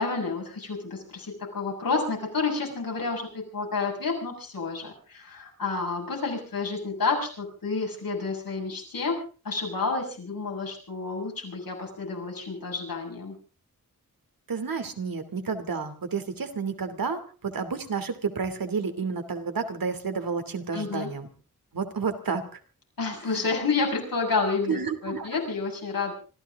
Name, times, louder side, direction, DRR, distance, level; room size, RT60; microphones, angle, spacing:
voice 1, 0.0-13.4 20.7-21.1 23.0-26.1, left 4 dB, 90° left, 0 dB, 7.1 m, -30 dB
voice 2, 14.5-21.3 21.7-22.4 23.3-23.4 24.7-25.4, right 5 dB, 90° right, 7 dB, 2.8 m, -31 dB
26.0 x 14.5 x 3.7 m, 0.37 s
wide cardioid pair, 115°, 34 cm